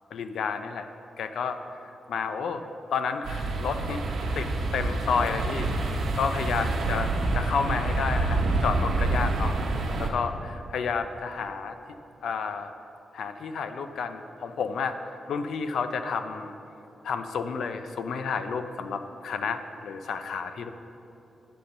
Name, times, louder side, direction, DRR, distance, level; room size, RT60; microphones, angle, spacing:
voice 1, 0.1-0.9 1.2-1.6 2.1-2.6 2.9-4.0 4.4-5.7 6.1-11.7 12.2-12.7 13.1-15.0 15.3-16.5 17.0-20.7, left 5 dB, 75° left, 8 dB, 0.4 m, -31 dB
sound 1, 3.2-10.1, right 2 dB, 70° right, 1.0 m, -27 dB
9.9 x 4.3 x 6.5 m, 2.9 s
wide cardioid pair, 175°, 0 cm